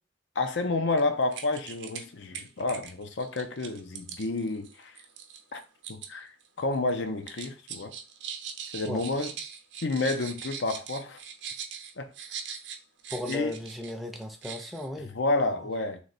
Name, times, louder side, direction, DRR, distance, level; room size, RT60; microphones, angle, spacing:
voice 1, 0.4-4.9 5.5-5.6 5.9-6.3 6.6-7.9 8.7-9.3 9.8-11.2 12.0-12.1 13.3-13.5 15.0-16.0, left 2 dB, 85° left, 0.6 m, -30 dB
sound 1, 0.9-1.0 1.3-2.0 2.3-6.1 6.4-6.9 7.3-13.9 14.2-14.9, right 7 dB, 85° right, 0.6 m, -41 dB
voice 2, 13.1-15.1 15.4-15.5, left 1 dB, ahead, 0.4 m, -36 dB
3.2 x 3.2 x 3.9 m
head